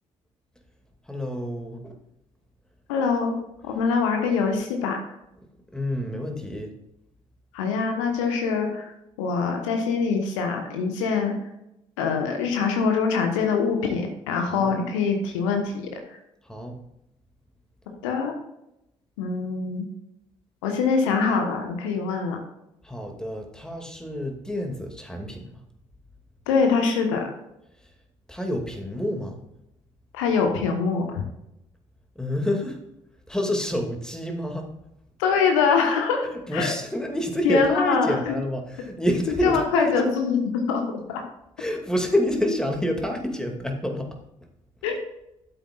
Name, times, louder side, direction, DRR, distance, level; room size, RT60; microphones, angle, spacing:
voice 1, 1.1-1.9 5.7-6.7 14.5-14.7 16.5-16.8 22.8-25.5 28.3-29.4 32.2-32.8 33.3-34.7 36.2-39.9 41.6-44.1, left 1 dB, 5° left, 3 dB, 2.3 m, -28 dB
voice 2, 2.9-5.0 7.5-11.4 12.0-16.0 18.0-18.3 19.2-19.9 20.6-22.4 26.5-27.3 30.1-31.2 35.2-36.8 37.4-38.3 39.4-40.8 41.1-41.2 44.8-44.9, left 5 dB, 75° left, 4 dB, 1.3 m, -24 dB
13.0 x 8.0 x 2.4 m, 0.84 s
figure-of-eight pair, 45°, 16 cm